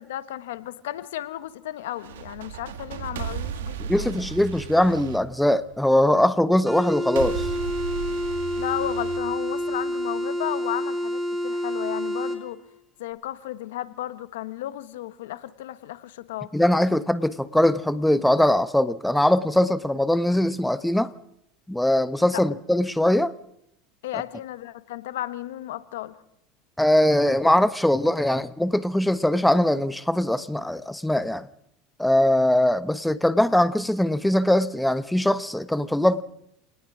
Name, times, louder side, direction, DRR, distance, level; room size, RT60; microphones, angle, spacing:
voice 1, 0.0-4.2 8.6-12.6 13.0-16.5 22.3-22.4 24.0-26.2, left 13 dB, 80° left, 1.3 m, -34 dB
sound 1, 1.9-6.0 7.2-10.0, right 8 dB, 85° right, 1.6 m, -35 dB
voice 2, 3.8-7.5 16.5-21.1 21.7-23.3 26.8-31.5 32.0-36.2, left 1 dB, 5° left, 1.1 m, -21 dB
sound 2, 6.7-12.4, equal, 15° right, 5.3 m, -28 dB
27.5 x 19.0 x 6.2 m
hypercardioid pair, 90°, 0 cm